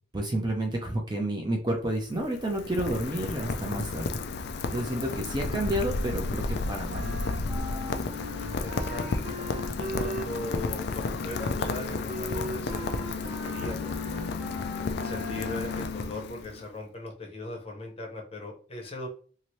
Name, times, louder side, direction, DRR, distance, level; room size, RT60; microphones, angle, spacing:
voice 1, 0.1-4.2 4.7-7.0, right 1 dB, 20° right, 1 dB, 0.5 m, -30 dB
Rain, 1.8-16.6, left 4 dB, 55° left, 0.3 m, -32 dB
Wind instrument woodwind instrument, 6.9-15.9, equal, 45° right, 0.9 m, -39 dB
voice 2, 8.4-9.4 9.8-14.0 15.0-19.1, left 2 dB, 30° left, 1 dB, 0.7 m, -39 dB
2.8 x 2.6 x 3.0 m, 0.42 s
head